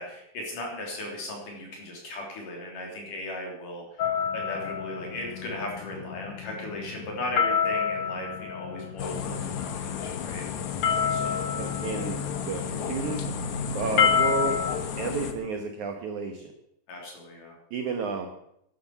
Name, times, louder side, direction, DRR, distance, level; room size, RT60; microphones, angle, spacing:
voice 1, 0.0-4.1 4.3-10.4 11.1-11.4 16.9-17.5, left 1 dB, 50° left, 0 dB, 4.6 m, -37 dB
sound 1, 4.0-14.8, left 7 dB, 85° left, 1.8 m, -29 dB
sound 2, 9.0-15.3, left 6 dB, 70° left, 1.8 m, -33 dB
voice 2, 11.6-13.3 13.7-14.6 15.0-16.5 17.7-18.3, right 4 dB, 70° right, 5 dB, 1.9 m, -32 dB
12.0 x 11.0 x 6.9 m, 0.77 s
omnidirectional pair, 5.0 m